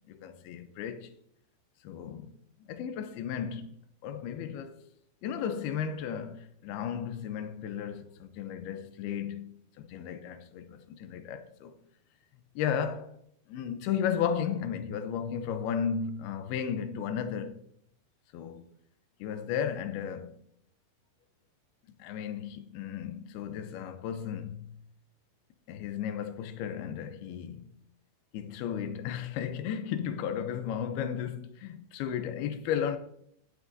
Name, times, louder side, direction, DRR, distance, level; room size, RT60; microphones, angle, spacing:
voice 1, 0.1-1.1 1.8-2.3 2.6-3.7 4.0-4.8 5.2-11.7 12.6-13.1 13.5-17.6 18.3-18.6 19.2-20.4 22.0-24.7 25.7-27.6 28.3-33.0, left 8 dB, 80° left, 2.5 m, -34 dB
17.5 x 9.2 x 2.6 m
omnidirectional pair, 4.8 m